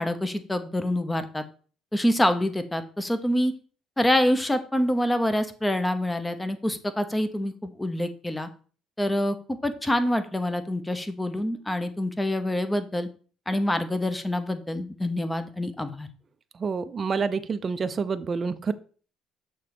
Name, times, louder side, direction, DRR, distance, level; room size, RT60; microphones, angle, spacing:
voice 1, 0.0-1.4 1.9-3.5 4.0-8.5 9.0-9.4 9.6-13.1 13.5-16.1, left 1 dB, 10° left, 10 dB, 0.8 m, -26 dB
voice 2, 16.6-18.7, right 5 dB, 35° right, 11 dB, 0.5 m, -28 dB
6.7 x 3.2 x 6.0 m, 0.41 s
cardioid pair, 95°, 0 cm